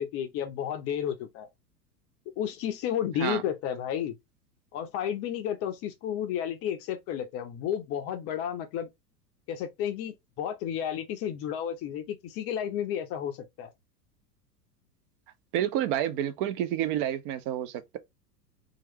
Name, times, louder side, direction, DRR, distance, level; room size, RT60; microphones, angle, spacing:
voice 1, 0.0-1.5 2.4-4.1 4.7-8.9 9.5-13.7, left 9 dB, 30° left, 0.5 m, -32 dB
voice 2, 15.5-18.0, right 11 dB, 35° right, 0.4 m, -29 dB
3.0 x 2.4 x 2.9 m
figure-of-eight pair, 90°, 49 cm